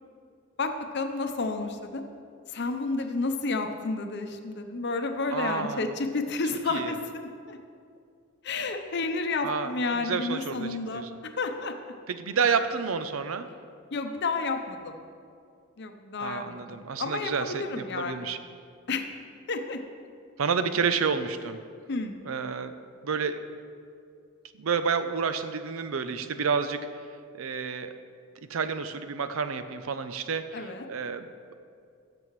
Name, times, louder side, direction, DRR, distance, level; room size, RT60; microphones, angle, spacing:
voice 1, 0.6-2.0 2.5-7.6 8.4-11.0 11.4-11.7 13.9-15.0 15.8-18.3 18.9-19.0 19.5-19.8 21.9-22.2 30.5-30.9, left 3 dB, 55° left, 6 dB, 0.7 m, -31 dB
voice 2, 5.3-5.8 6.7-6.9 9.4-11.1 12.1-13.5 16.2-18.4 20.4-21.6 22.2-22.7 23.0-23.4 24.6-26.8 27.4-28.0 28.5-31.5, right 5 dB, 80° right, 10 dB, 0.5 m, -30 dB
17.0 x 6.9 x 3.2 m, 2.3 s
head